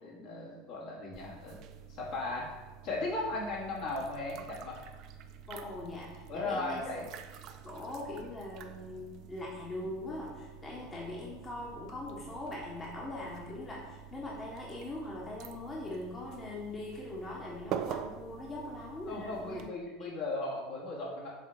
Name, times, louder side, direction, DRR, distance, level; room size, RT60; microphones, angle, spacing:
voice 1, 0.0-1.6 2.0-2.5 2.8-4.8 6.3-7.1 19.1-21.3, left 2 dB, 55° left, -3 dB, 1.9 m, -37 dB
sound 1, 1.1-19.7, right 9 dB, 55° right, 0.4 m, -47 dB
voice 2, 5.5-6.8 7.6-19.7 20.0-20.1, left 2 dB, 25° left, -4 dB, 1.3 m, -41 dB
7.3 x 3.3 x 4.0 m, 1.3 s
hypercardioid pair, 85°, 0 cm